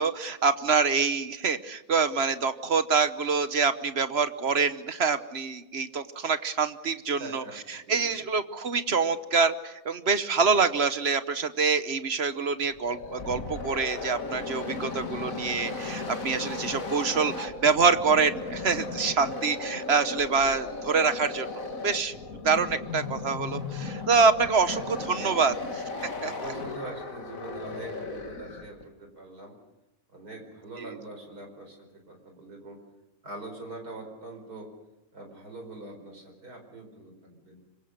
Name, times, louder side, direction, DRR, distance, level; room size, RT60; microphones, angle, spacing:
voice 1, 0.0-7.4 7.9-22.1 22.4-25.5 26.2-26.3, right 5 dB, 45° right, 12 dB, 1.1 m, -26 dB
voice 2, 7.2-8.1 24.7-25.6 26.2-29.6 30.1-32.8 33.2-34.7 35.1-37.6, right 2 dB, 70° right, 4 dB, 5.5 m, -43 dB
sound 1, 12.7-28.8, left 3 dB, 55° left, 2.6 m, -36 dB
25.5 x 23.0 x 6.6 m, 1.0 s
omnidirectional pair, 1.7 m